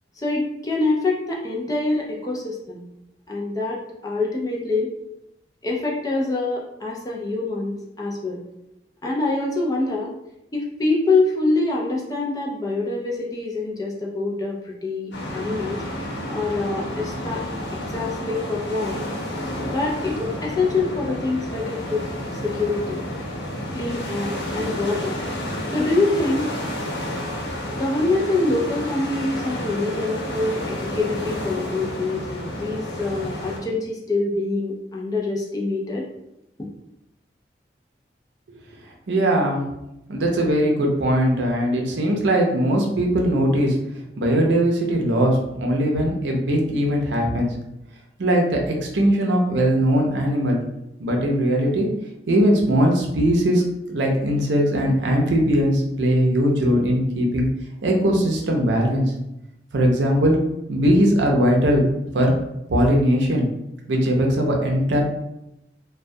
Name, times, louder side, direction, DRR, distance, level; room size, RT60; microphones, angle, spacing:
voice 1, 0.2-2.8 3.3-4.9 5.6-8.4 9.0-10.1 10.5-15.8 16.3-17.4 17.9-19.0 19.6-22.0 22.4-23.0 23.7-25.2 25.7-26.5 27.7-36.0, left 3 dB, 20° left, -3 dB, 0.4 m, -25 dB
sound 1, 15.1-33.6, left 1 dB, 75° left, 0.6 m, -30 dB
voice 2, 39.1-39.7 40.1-43.7 44.2-47.5 48.2-50.6 51.0-51.9 52.3-53.6 53.9-57.5 57.8-59.1 59.7-60.4 60.7-62.3 62.7-63.5 63.9-65.0, equal, 85° right, 0 dB, 0.5 m, -20 dB
2.2 x 2.2 x 2.6 m, 0.86 s
head